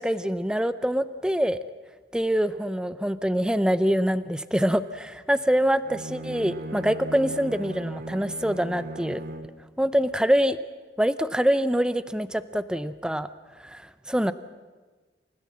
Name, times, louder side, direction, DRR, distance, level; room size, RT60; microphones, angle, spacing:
voice 1, 0.0-1.6 2.1-9.2 9.8-10.6 11.0-13.3 13.6-14.3, equal, 5° right, 13 dB, 0.6 m, -25 dB
Bowed string instrument, 5.8-9.6, right 2 dB, 55° right, 1.2 m, -38 dB
29.0 x 15.5 x 7.5 m, 1.3 s
head